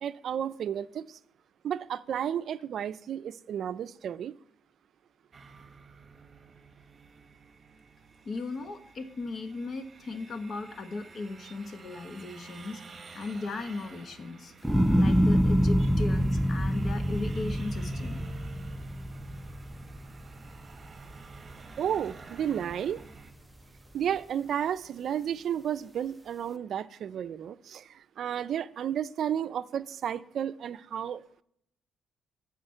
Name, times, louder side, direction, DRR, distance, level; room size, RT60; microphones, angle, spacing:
voice 1, 0.0-1.2 1.6-4.3 21.8-23.0 23.9-31.2, right 9 dB, 65° right, 0.4 m, -32 dB
sound 1, 5.3-23.3, right 5 dB, 35° right, 1.2 m, -50 dB
voice 2, 8.2-12.8 13.1-14.5 15.0-18.2, left 3 dB, 50° left, 1.1 m, -37 dB
sound 2, 14.6-21.0 21.4-22.0, equal, 5° right, 0.5 m, -26 dB
10.0 x 5.0 x 7.7 m
cardioid pair, 95°, 0 cm